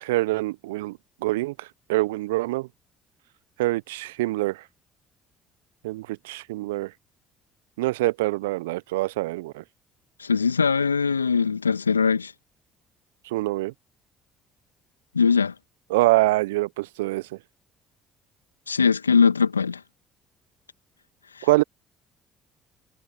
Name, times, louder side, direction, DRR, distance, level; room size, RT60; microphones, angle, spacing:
voice 1, 0.0-2.7 3.6-4.6 5.8-6.9 7.8-9.6 13.3-13.7 15.9-17.2 21.4-21.6, right 19 dB, 75° right, 0.9 m, -25 dB
voice 2, 10.2-12.3 15.1-15.5 18.7-19.8, left 5 dB, 85° left, 2.0 m, -21 dB
figure-of-eight pair, 50°, 0 cm